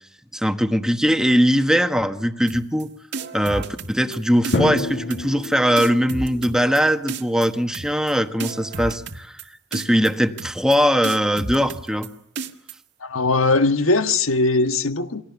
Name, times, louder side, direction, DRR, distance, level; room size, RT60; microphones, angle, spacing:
voice 1, 0.3-2.9 3.3-9.4 9.7-12.1, equal, 5° right, 1.4 m, -20 dB
sound 1, 2.5-2.8 3.1-4.2 4.4-4.8 5.1-5.5 5.8-6.8 7.1-7.5 7.7-8.1 8.4-9.4 9.7-10.1 10.4-10.8 11.0-12.1 12.4-12.7, right 4 dB, 60° right, 1.8 m, -31 dB
Drum, 4.5-6.5, left 2 dB, 65° left, 2.6 m, -27 dB
voice 2, 13.0-15.2, left 3 dB, 85° left, 1.5 m, -20 dB
29.0 x 22.5 x 7.1 m
head